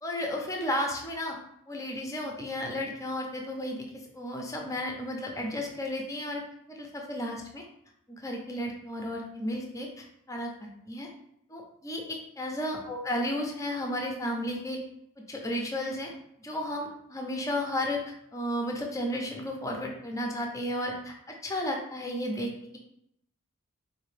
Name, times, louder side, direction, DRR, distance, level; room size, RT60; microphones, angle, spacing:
voice 1, 0.0-1.4 1.7-3.8 4.1-6.4 6.7-7.6 8.1-11.1 11.5-14.8 15.2-16.1 16.4-18.0 18.3-22.8, left 1 dB, 15° left, 1 dB, 0.6 m, -33 dB
4.1 x 2.7 x 3.3 m, 0.74 s
head